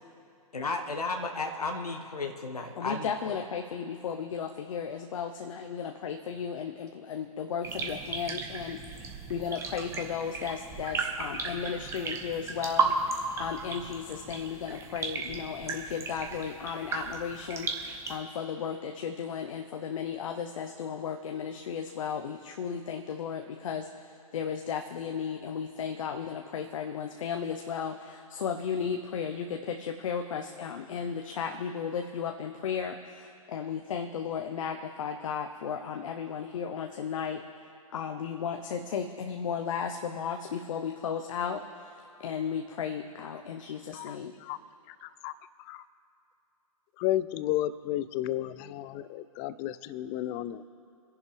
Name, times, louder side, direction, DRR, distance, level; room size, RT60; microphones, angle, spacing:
voice 1, 0.5-3.4, left 3 dB, 85° left, 3 dB, 1.4 m, -34 dB
voice 2, 2.7-44.3, left 7 dB, 60° left, 4 dB, 1.0 m, -35 dB
sound 1, 7.6-18.2, right 4 dB, 15° right, 1.3 m, -35 dB
voice 3, 45.0-45.3 45.7-45.8 47.0-50.8, left 13 dB, 30° left, 16 dB, 0.5 m, -32 dB
29.0 x 11.0 x 3.5 m, 2.5 s
hypercardioid pair, 125°, 19 cm